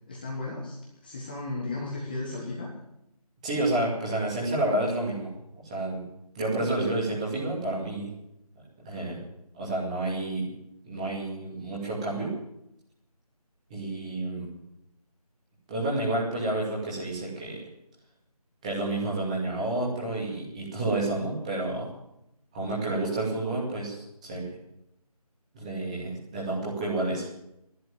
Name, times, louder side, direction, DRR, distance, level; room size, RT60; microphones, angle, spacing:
voice 1, 0.1-0.8 1.0-2.7, left 2 dB, 15° left, -4 dB, 1.4 m, -34 dB
voice 2, 3.4-6.0 6.3-8.1 8.8-9.2 9.5-10.5 10.8-12.3 13.7-14.5 15.7-17.6 18.6-21.9 22.5-24.6 25.5-27.3, right 2 dB, 10° right, -5 dB, 2.4 m, -30 dB
12.0 x 11.0 x 9.2 m, 0.83 s
figure-of-eight pair, 165°, 20 cm